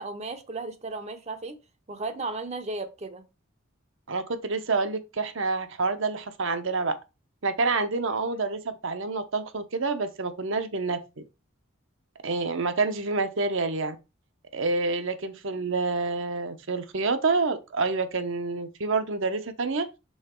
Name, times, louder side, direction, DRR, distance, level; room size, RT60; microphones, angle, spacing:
voice 1, 0.0-1.6 1.9-3.2, right 3 dB, 30° right, 0.7 m, -35 dB
voice 2, 4.1-7.0 7.4-11.0 12.2-14.0 14.5-19.9, right 3 dB, 65° right, 0.8 m, -28 dB
5.6 x 4.0 x 4.4 m
head